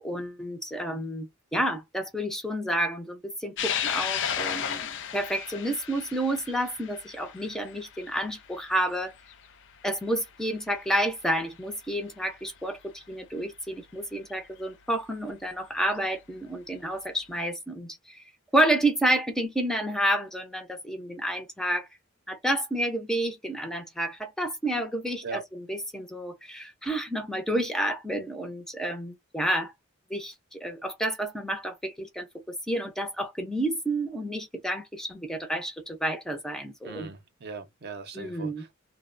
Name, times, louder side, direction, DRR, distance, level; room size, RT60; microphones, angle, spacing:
voice 1, 0.0-9.1 9.8-18.2 18.5-21.9 22.3-29.7 30.1-37.1 38.1-38.6, right 1 dB, ahead, 0.5 m, -30 dB
sound 1, 3.6-10.2 10.7-10.8 12.0-12.1 14.3-14.4 15.8-16.1, left 9 dB, 60° left, 0.5 m, -34 dB
voice 2, 36.8-38.7, right 5 dB, 50° right, 0.6 m, -39 dB
2.8 x 2.0 x 2.4 m
head